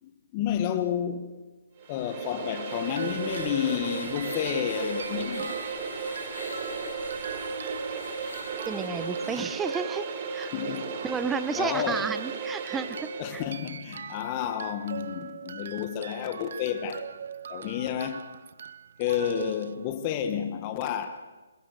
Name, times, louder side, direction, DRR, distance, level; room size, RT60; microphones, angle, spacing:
voice 1, 0.0-1.4 1.9-5.6 10.5-11.0 11.6-12.1 13.2-17.1 17.5-18.3 19.0-21.2, left 9 dB, 25° left, 1.4 m, -31 dB
sound 1, 1.8-13.4, right 5 dB, 30° right, 3.9 m, -35 dB
sound 2, 2.1-9.6, left 3 dB, 80° left, 4.5 m, -44 dB
sound 3, 2.9-20.3, right 7 dB, 55° right, 1.1 m, -43 dB
voice 2, 8.7-10.1 10.3-10.5 11.0-13.4, right 5 dB, 10° right, 0.7 m, -32 dB
27.5 x 21.5 x 6.6 m
hypercardioid pair, 155°, 0 cm